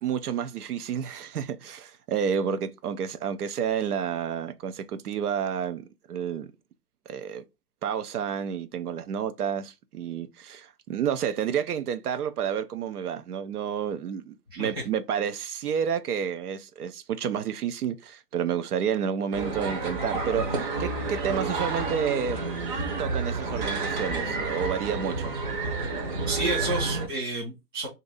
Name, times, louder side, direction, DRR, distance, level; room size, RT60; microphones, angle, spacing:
voice 1, 0.0-6.5 7.1-7.4 7.8-22.4 23.0-25.4, right 8 dB, 65° right, 0.6 m, -30 dB
voice 2, 14.5-14.8 26.3-27.9, right 2 dB, 15° right, 0.4 m, -30 dB
sound 1, 19.3-27.1, right 3 dB, 30° right, 0.8 m, -30 dB
2.6 x 2.6 x 3.9 m
hypercardioid pair, 155°, 49 cm